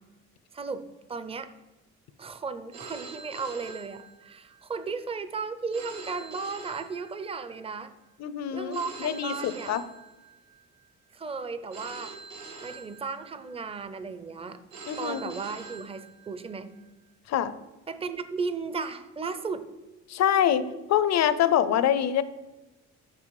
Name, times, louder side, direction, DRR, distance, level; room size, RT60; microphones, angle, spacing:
voice 1, 0.5-0.8 1.1-1.5 2.2-7.9 8.5-9.7 11.1-12.1 12.6-14.6 15.0-16.7 17.9-19.7, right 4 dB, 20° right, 11 dB, 0.5 m, -35 dB
Telephone, 2.7-4.6 5.7-7.6 8.7-10.6 11.7-13.6 14.7-16.6, right 4 dB, 80° right, 1.7 m, -44 dB
voice 2, 8.2-9.8 14.9-15.2 17.3-17.5 20.1-20.6 20.9-22.2, left 10 dB, 60° left, 15 dB, 0.5 m, -25 dB
6.1 x 5.2 x 4.7 m, 1.1 s
cardioid pair, 90°, 30 cm